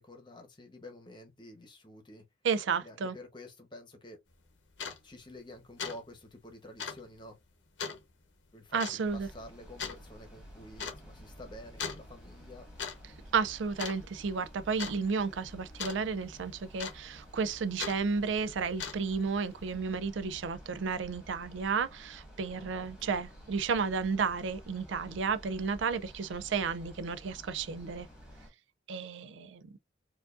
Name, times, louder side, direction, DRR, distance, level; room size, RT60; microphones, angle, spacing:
voice 1, 0.0-2.2 2.8-4.2 5.0-7.4 8.5-12.7 22.5-23.2, left 1 dB, 25° left, 0.9 m, -50 dB
voice 2, 2.4-3.1 8.7-9.3 13.3-28.1 28.9-29.6, right 5 dB, 75° right, 0.4 m, -32 dB
sound 1, 4.3-4.4 4.7-5.0 5.4-5.5 5.8-6.0 6.3-6.4 6.8-7.0 7.8-8.0 8.8-9.0 9.8-10.0 10.8-11.0 11.8-12.0 12.6-13.0 13.2-13.5 13.8-14.3 14.8-15.0 15.8-16.0 16.8-17.2 17.8-18.0 18.6-19.2, left 6 dB, 75° left, 0.8 m, -38 dB
sound 2, 9.0-28.5, equal, 5° right, 1.6 m, -52 dB
4.5 x 2.5 x 2.5 m
head